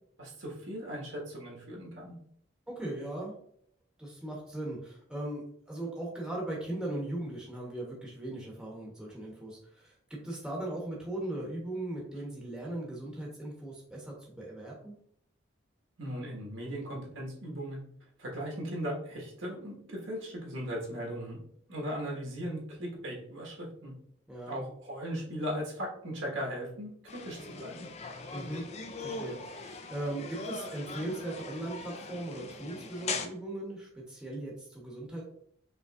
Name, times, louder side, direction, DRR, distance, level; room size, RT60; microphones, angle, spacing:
voice 1, 0.2-2.1 16.0-17.8 18.2-21.4 21.7-23.9 24.4-27.9, equal, 85° right, -3 dB, 1.5 m, -38 dB
voice 2, 2.7-3.3 4.0-15.0 24.3-24.6 28.3-28.7 29.0-35.2, right 1 dB, 5° right, -3 dB, 0.9 m, -38 dB
sound 1, 27.1-33.3, left 4 dB, 35° left, 0.3 m, -40 dB
5.2 x 3.1 x 2.4 m, 0.66 s
head